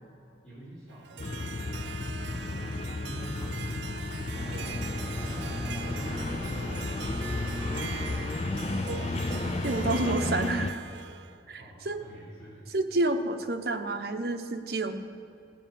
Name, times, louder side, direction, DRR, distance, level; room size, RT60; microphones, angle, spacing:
voice 1, 0.4-1.5 2.2-3.9 5.1-8.7 11.6-12.7, right 1 dB, 5° left, -11 dB, 4.0 m, -46 dB
Harp, 0.9-11.4, right 7 dB, 80° right, 0.5 m, -42 dB
sound 1, 1.2-10.7, left 3 dB, 35° left, 0.4 m, -33 dB
sound 2, 4.3-10.4, equal, 30° right, 3.1 m, -39 dB
voice 2, 9.6-10.8 11.5-12.0 12.7-14.9, right 2 dB, 55° right, 5 dB, 1.0 m, -29 dB
18.0 x 8.2 x 7.0 m, 2.7 s
head